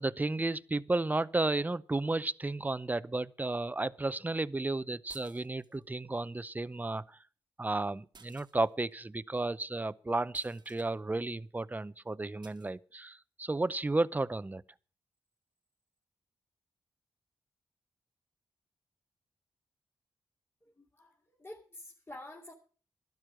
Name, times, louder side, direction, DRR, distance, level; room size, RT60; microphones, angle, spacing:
voice 1, 0.0-7.2 7.6-14.6, right 2 dB, 20° right, 0.6 m, -33 dB
sound 1, 5.1-5.8 8.1-8.9 10.3-10.9 12.4-12.7, right 5 dB, 55° right, 1.3 m, -57 dB
voice 2, 20.6-22.5, left 1 dB, 25° left, 2.7 m, -49 dB
12.5 x 10.5 x 6.3 m
cardioid pair, 50°, 9 cm